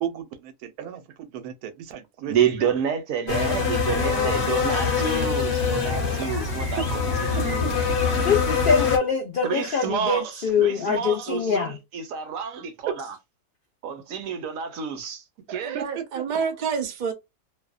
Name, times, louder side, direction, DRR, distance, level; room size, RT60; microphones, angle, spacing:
voice 1, 0.0-2.4 2.7-2.8 6.0-6.3 6.8-6.9 12.9-13.0 15.5-16.2, right 9 dB, 90° right, 1.1 m, -34 dB
voice 2, 2.3-7.8 9.4-13.2 13.8-15.9, right 7 dB, 70° right, 1.0 m, -29 dB
sound 1, 3.3-9.0, left 5 dB, 55° left, 1.0 m, -24 dB
voice 3, 3.9-4.3 15.6-17.1, right 6 dB, 55° right, 0.5 m, -29 dB
sound 2, 5.9-8.4, left 1 dB, 25° left, 0.5 m, -42 dB
voice 4, 8.2-11.8, left 6 dB, 80° left, 0.4 m, -23 dB
2.6 x 2.1 x 2.3 m
omnidirectional pair, 1.5 m